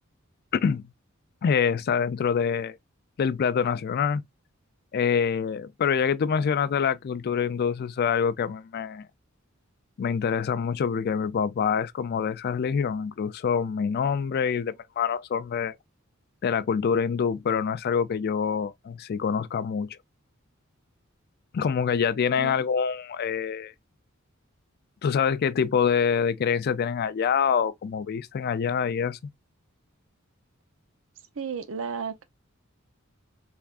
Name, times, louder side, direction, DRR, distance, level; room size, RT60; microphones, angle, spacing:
voice 1, 0.5-0.9 1.4-2.8 3.2-4.2 4.9-9.1 10.0-15.7 16.4-20.0 21.5-23.7 25.0-29.2, left 6 dB, 50° left, 0.3 m, -26 dB
voice 2, 31.4-32.2, right 6 dB, 70° right, 0.6 m, -33 dB
3.5 x 3.4 x 2.4 m
head